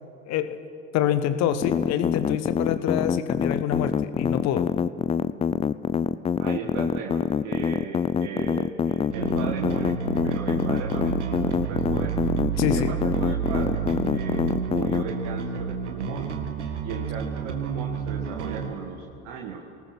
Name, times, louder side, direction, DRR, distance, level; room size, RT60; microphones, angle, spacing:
voice 1, 0.2-0.6 0.9-4.7 12.6-12.9, left 10 dB, 45° left, 12 dB, 1.4 m, -26 dB
sound 1, 1.6-15.0, left 7 dB, 15° left, 0.5 m, -25 dB
voice 2, 6.4-10.0 10.2-12.2 12.6-16.3 16.8-19.6, right 6 dB, 50° right, 2 dB, 1.8 m, -36 dB
Bass guitar, 9.1-18.7, right 6 dB, 75° right, 1.8 m, -30 dB
27.5 x 19.0 x 6.2 m, 2.6 s
figure-of-eight pair, 65°, 35 cm